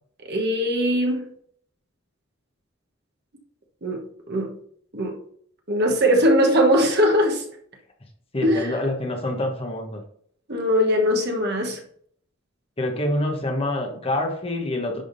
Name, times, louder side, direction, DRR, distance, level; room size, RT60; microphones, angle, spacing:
voice 1, 0.2-1.2 3.8-4.5 4.9-5.2 5.7-7.4 8.4-8.7 10.5-11.8, equal, 55° right, 1.3 m, -21 dB
voice 2, 8.3-10.0 12.8-15.0, left 1 dB, 30° left, 1.1 m, -26 dB
10.5 x 3.6 x 4.0 m
head